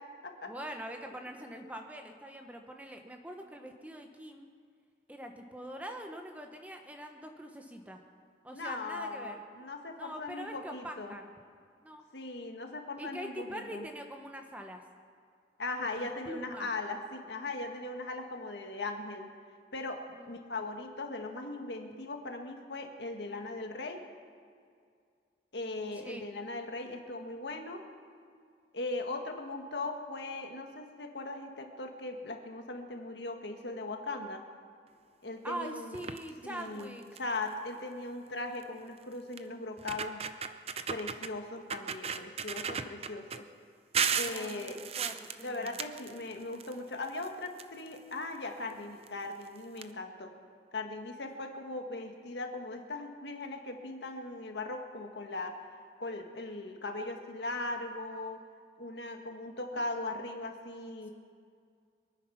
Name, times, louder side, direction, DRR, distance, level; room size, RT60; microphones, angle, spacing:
voice 1, 0.4-4.5 5.1-8.0 8.4-9.4 10.0-11.3 11.8-12.0 13.0-14.8 16.0-16.7 20.1-20.3 26.0-26.2 35.4-37.1 44.2-45.8 59.7-59.8, right 1 dB, 10° right, 4 dB, 1.0 m, -43 dB
voice 2, 8.5-11.1 12.1-13.8 15.6-19.3 19.7-20.0 20.3-24.0 25.5-27.8 28.7-34.4 35.2-36.0 36.4-40.2 40.9-43.5 44.1-44.8 45.4-50.3 50.7-55.7 56.0-58.4 58.8-61.1, left 2 dB, 80° left, 4 dB, 1.7 m, -39 dB
sound 1, 35.9-36.3 36.8-36.9 37.2-37.4 38.6-38.7 39.4-39.5 39.8-41.3 41.7-43.4 43.9-46.7 47.0-48.1 49.0-49.1 49.4-49.5 49.8-49.9, right 6 dB, 35° right, 0.6 m, -35 dB
23.5 x 9.5 x 5.8 m, 2.2 s
head